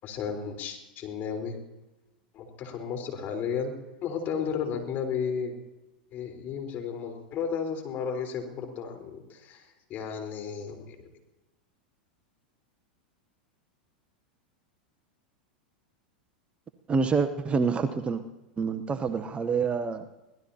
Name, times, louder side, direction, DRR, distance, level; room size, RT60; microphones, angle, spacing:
voice 1, 0.0-1.6 2.3-3.7 4.0-5.5 6.1-11.1, left 6 dB, 40° left, 3 dB, 4.3 m, -33 dB
voice 2, 16.9-18.2 18.6-20.1, right 5 dB, 25° right, 9 dB, 0.9 m, -27 dB
24.5 x 17.5 x 2.9 m, 1.0 s
hypercardioid pair, 100°, 5 cm